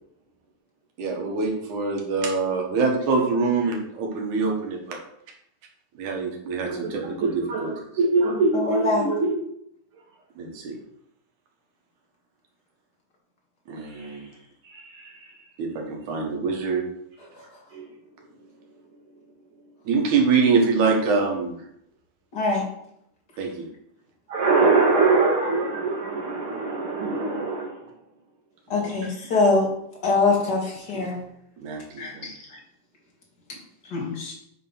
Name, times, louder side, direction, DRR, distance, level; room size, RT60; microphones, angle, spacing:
voice 1, 1.0-5.0 6.0-7.7 10.4-10.7 13.7-14.3 15.6-16.8 19.9-21.6 23.4-23.7 28.7-29.0 30.9-31.1 31.6-32.3, right 4 dB, 75° right, 1 dB, 2.8 m, -25 dB
voice 2, 6.7-9.3 13.9-14.2 14.7-15.2 17.7-17.8 24.3-27.8, right 3 dB, 55° right, -3 dB, 1.6 m, -23 dB
voice 3, 8.5-9.1 22.3-22.6 28.7-29.7 30.0-31.2 32.0-32.6 33.9-34.3, left 3 dB, 35° left, -2 dB, 2.1 m, -23 dB
9.0 x 3.7 x 5.6 m, 0.74 s
omnidirectional pair, 3.6 m